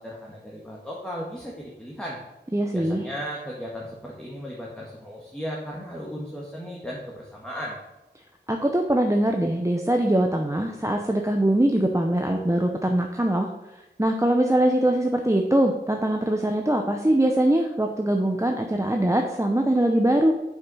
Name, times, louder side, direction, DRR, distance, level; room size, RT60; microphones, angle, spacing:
voice 1, 0.0-2.2 2.7-7.8, equal, 5° left, -3 dB, 1.8 m, -36 dB
voice 2, 2.5-3.1 8.5-13.5 14.0-20.3, right 1 dB, 15° right, 2 dB, 0.8 m, -22 dB
7.1 x 6.6 x 5.6 m, 1.0 s
wide cardioid pair, 40°, 18 cm